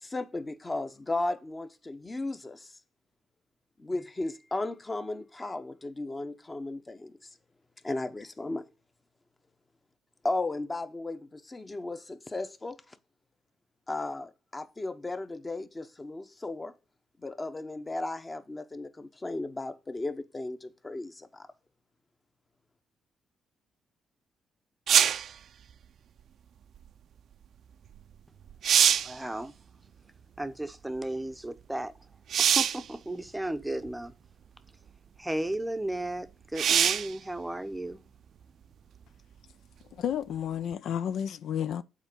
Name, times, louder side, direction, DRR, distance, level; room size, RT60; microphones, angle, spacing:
voice 1, 0.0-2.8 3.8-7.1 7.8-8.7 10.2-12.9 13.9-16.7 17.2-21.5, left 2 dB, 20° left, 0.9 m, -35 dB
sound 1, 24.9-25.3 28.0-28.1 28.5-29.2 32.3-32.9 33.9-34.0 36.6-37.1 40.7-40.8, right 8 dB, 65° right, 0.5 m, -23 dB
voice 2, 29.0-29.5 30.4-31.9 32.4-34.1 35.2-38.0, right 1 dB, 5° right, 0.7 m, -34 dB
voice 3, 39.9-41.8, left 9 dB, 70° left, 0.4 m, -31 dB
7.2 x 4.4 x 6.8 m
cardioid pair, 90°, 0 cm